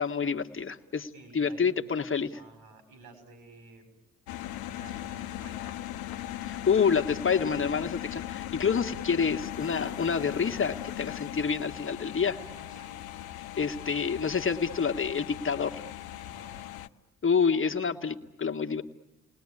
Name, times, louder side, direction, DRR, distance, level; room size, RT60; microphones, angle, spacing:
voice 1, 0.0-2.4 6.4-12.4 13.6-15.9 17.2-18.8, left 6 dB, 30° left, 6 dB, 1.7 m, -28 dB
voice 2, 1.1-1.7 2.3-3.8 4.7-5.9 12.2-12.9 13.8-13.9 16.3-16.6, right 3 dB, 70° right, 6 dB, 5.9 m, -52 dB
sound 1, 4.3-16.9, left 13 dB, 65° left, 0.9 m, -39 dB
30.0 x 20.0 x 9.9 m, 1.0 s
hypercardioid pair, 45°, 40 cm